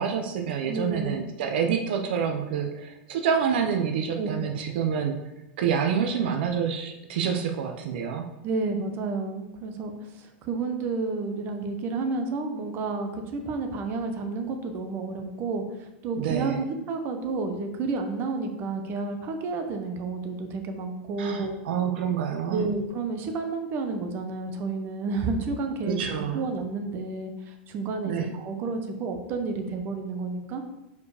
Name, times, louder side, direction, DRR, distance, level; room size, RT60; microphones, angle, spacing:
voice 1, 0.0-5.2 5.6-8.3 16.1-16.6 21.2-22.7 25.8-26.4 28.0-28.3, right 7 dB, 70° right, 4 dB, 0.7 m, -27 dB
voice 2, 0.7-1.3 4.2-4.5 8.4-15.6 16.0-21.5 22.5-30.6, right 3 dB, 40° right, 5 dB, 0.9 m, -31 dB
4.8 x 4.6 x 4.9 m, 0.96 s
supercardioid pair, 130°, 6 cm